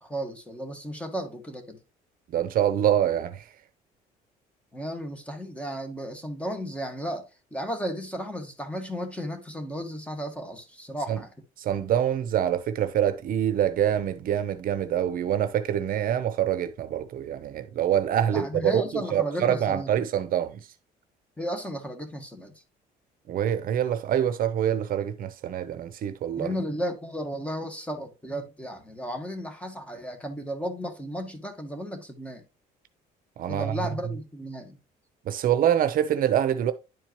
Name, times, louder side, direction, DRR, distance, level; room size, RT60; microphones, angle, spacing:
voice 1, 0.0-1.8 4.7-11.3 18.3-20.0 21.4-22.5 26.4-32.4 33.5-34.8, equal, 5° left, 1.6 m, -34 dB
voice 2, 2.3-3.4 11.1-11.2 11.6-20.6 23.3-26.5 33.4-33.7 35.3-36.7, right 10 dB, 60° right, 0.7 m, -25 dB
10.5 x 4.4 x 2.9 m
cardioid pair, 110°, 17 cm